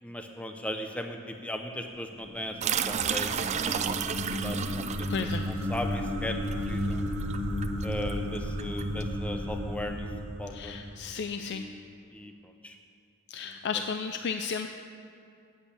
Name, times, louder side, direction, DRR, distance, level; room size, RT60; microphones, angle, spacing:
voice 1, 0.0-6.4 6.7-7.0 7.8-10.1 10.4-10.7 11.5-12.8 13.4-13.8, left 1 dB, 5° left, 4 dB, 0.6 m, -38 dB
sound 1, 2.1-11.3, equal, 55° right, 1.2 m, -33 dB
sound 2, 2.6-9.0, right 7 dB, 30° right, 0.3 m, -32 dB
voice 2, 5.1-5.4 10.5-11.6 13.3-14.7, left 6 dB, 50° left, 6 dB, 0.4 m, -33 dB
8.5 x 8.2 x 8.3 m, 2.5 s
head